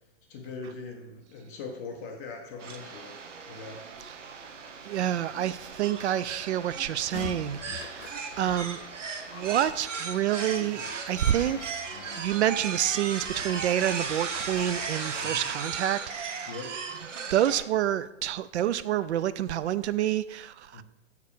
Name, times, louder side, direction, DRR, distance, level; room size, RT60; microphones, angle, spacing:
voice 1, 0.3-3.2 3.5-3.8 15.2-15.5 16.5-16.8 20.7-20.8, left 4 dB, 15° left, 1 dB, 0.4 m, -41 dB
sound 1, 2.6-17.6, right 5 dB, 85° right, 1.1 m, -37 dB
voice 2, 4.9-8.8 9.3-11.7 12.2-16.5 17.3-20.8, right 11 dB, 65° right, 15 dB, 0.5 m, -28 dB
sound 2, 7.1-15.8, left 9 dB, 85° left, 0.6 m, -46 dB
6.6 x 4.8 x 5.1 m, 0.92 s
hypercardioid pair, 150°, 36 cm